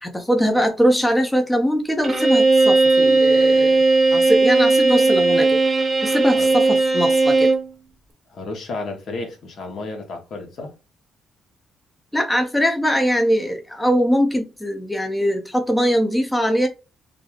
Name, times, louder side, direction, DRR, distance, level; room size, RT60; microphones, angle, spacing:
voice 1, 0.0-3.8 4.1-5.6 6.0-7.5 12.1-16.7, equal, 10° left, 0.5 m, -21 dB
Bowed string instrument, 2.0-7.7, right 3 dB, 25° right, 0.8 m, -17 dB
voice 2, 8.3-10.7, left 3 dB, 65° left, 0.9 m, -32 dB
3.0 x 2.4 x 2.3 m
cardioid pair, 90°, 0 cm